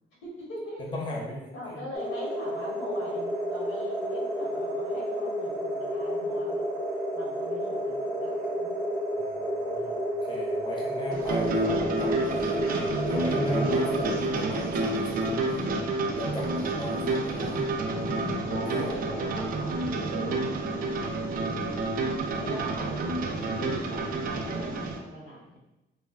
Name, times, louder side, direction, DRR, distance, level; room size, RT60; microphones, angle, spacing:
voice 1, 0.2-0.9 1.5-6.6 7.1-8.7 18.5-21.7 22.3-25.6, equal, 85° left, -4 dB, 1.1 m, -41 dB
voice 2, 0.8-1.8 9.1-12.6 13.1-15.6 16.2-17.6 18.8-18.9, left 1 dB, 25° left, -2 dB, 0.6 m, -37 dB
sound 1, 1.9-14.1, equal, 15° right, 0.7 m, -31 dB
sound 2, 11.1-25.0, right 2 dB, 45° right, 0.4 m, -29 dB
sound 3, 11.9-13.5 14.0-19.3 19.8-19.9 20.7-20.8, left 3 dB, 65° left, 0.7 m, -43 dB
3.0 x 2.1 x 2.4 m, 0.97 s
cardioid pair, 90°, 20 cm